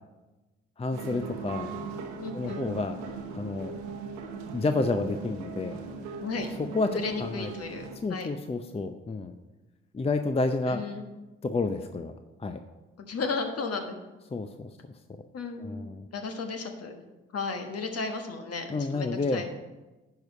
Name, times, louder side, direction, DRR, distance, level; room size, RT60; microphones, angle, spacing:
voice 1, 0.8-1.7 2.3-3.0 3.3-3.7 4.5-5.8 6.7-7.5 8.0-9.3 9.9-10.8 11.4-12.1 12.4-12.6 14.3-14.9 15.6-16.1 18.7-19.5, left 3 dB, 20° left, 8 dB, 0.6 m, -30 dB
sound 1, 0.9-8.0, right 4 dB, 85° right, 1.0 m, -39 dB
voice 2, 2.2-2.6 6.2-6.5 6.9-8.3 10.7-11.0 13.0-13.9 15.3-15.9 16.1-17.0 17.3-19.5, left 4 dB, 50° left, 5 dB, 1.4 m, -34 dB
10.5 x 4.8 x 5.4 m, 1.1 s
hypercardioid pair, 45°, 31 cm